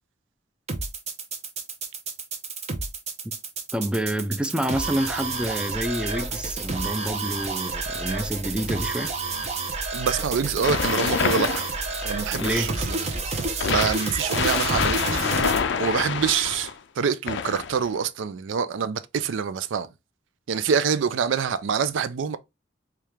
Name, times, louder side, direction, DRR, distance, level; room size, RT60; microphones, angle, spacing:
sound 1, 0.7-15.6, right 3 dB, 35° right, 0.7 m, -30 dB
voice 1, 3.7-9.1 12.3-12.7, right 1 dB, 5° right, 0.4 m, -28 dB
voice 2, 9.9-11.6 12.0-13.0 13.7-15.2 15.8-19.9 20.5-22.4, right 6 dB, 85° right, 0.4 m, -26 dB
sound 2, 10.6-12.9 13.6-16.7 17.3-17.9, left 6 dB, 70° left, 0.4 m, -27 dB
4.6 x 2.4 x 3.3 m
head